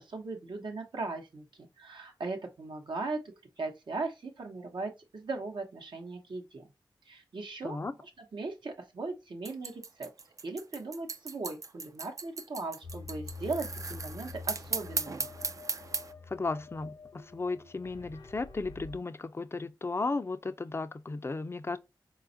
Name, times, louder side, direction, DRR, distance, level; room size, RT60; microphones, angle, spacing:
voice 1, 0.0-6.7 7.0-10.1 10.4-15.3, right 3 dB, 70° right, 0.8 m, -38 dB
voice 2, 7.6-7.9 16.3-21.8, left 3 dB, 30° left, 0.4 m, -35 dB
sound 1, 9.4-16.1, right 4 dB, 40° right, 0.3 m, -37 dB
sound 2, 12.8-19.0, left 4 dB, 65° left, 0.7 m, -46 dB
4.0 x 2.3 x 2.6 m
wide cardioid pair, 70°, 8 cm